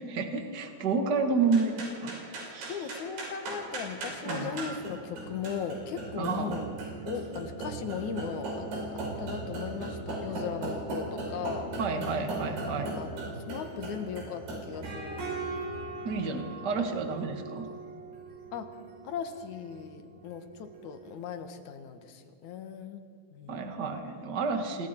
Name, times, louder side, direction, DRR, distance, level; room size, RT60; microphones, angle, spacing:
voice 1, 0.0-2.8 4.2-4.5 6.2-6.6 11.8-13.0 16.0-17.7 23.5-24.9, right 4 dB, 40° right, 4 dB, 1.5 m, -30 dB
sound 1, 1.4-21.0, right 2 dB, 75° right, 7.1 m, -38 dB
voice 2, 2.4-6.7 7.0-8.7 8.9-11.7 12.9-13.1 13.5-15.2 18.5-18.7 19.0-23.0 23.3-23.8, left 7 dB, 60° left, 7 dB, 2.2 m, -38 dB
29.0 x 25.5 x 4.6 m, 2.1 s
omnidirectional pair, 4.8 m